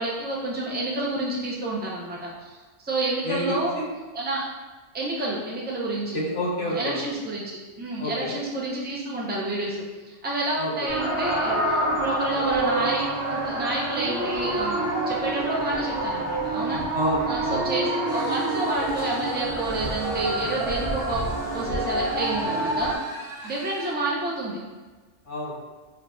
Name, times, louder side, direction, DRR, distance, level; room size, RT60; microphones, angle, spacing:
voice 1, 0.0-3.7 4.1-4.5 4.9-6.2 6.6-16.8 17.3-22.9 23.4-24.6, right 2 dB, 15° right, -4 dB, 0.4 m, -29 dB
voice 2, 3.2-3.8 6.1-7.0 8.0-8.3 10.6-10.9 16.9-17.6 25.3-25.6, equal, 80° left, -6 dB, 1.4 m, -29 dB
sound 1, 10.9-22.9, right 2 dB, 90° right, 1.3 m, -27 dB
sound 2, 18.1-24.0, right 1 dB, 45° left, 0.9 m, -41 dB
5.0 x 2.2 x 2.6 m, 1.3 s
omnidirectional pair, 1.2 m